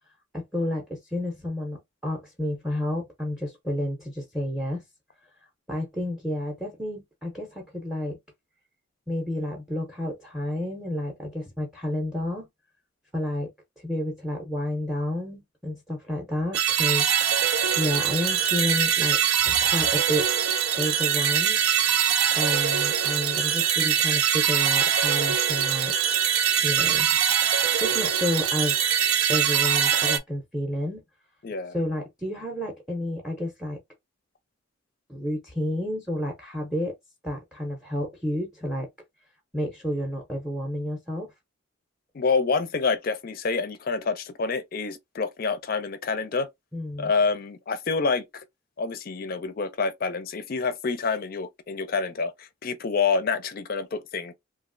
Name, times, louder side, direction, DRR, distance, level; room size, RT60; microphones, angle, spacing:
voice 1, 0.3-4.8 5.7-8.2 9.1-12.5 13.1-19.2 19.5-20.3 20.7-21.6 22.3-26.0 26.6-27.2 27.8-28.8 29.3-31.0 31.7-33.8 35.1-36.9 37.2-38.9 39.5-41.3 46.7-47.1, left 1 dB, ahead, 0.6 m, -30 dB
sound 1, 16.5-30.2, right 9 dB, 90° right, 0.5 m, -23 dB
voice 2, 31.4-31.7 42.1-46.5 47.0-48.4 48.8-54.3, left 4 dB, 45° left, 0.4 m, -27 dB
3.0 x 2.4 x 2.5 m
head